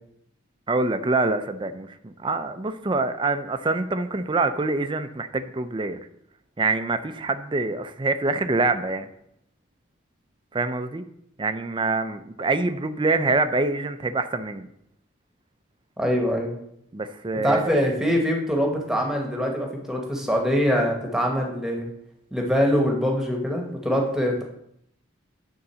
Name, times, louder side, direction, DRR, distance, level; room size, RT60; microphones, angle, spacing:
voice 1, 0.7-6.0 6.6-9.1 10.5-11.0 11.4-14.7 16.9-17.8, right 3 dB, 25° right, 9 dB, 0.5 m, -25 dB
voice 2, 16.0-16.6 17.4-21.9 22.3-24.4, equal, 5° right, 1 dB, 1.1 m, -23 dB
9.7 x 3.8 x 6.8 m, 0.75 s
head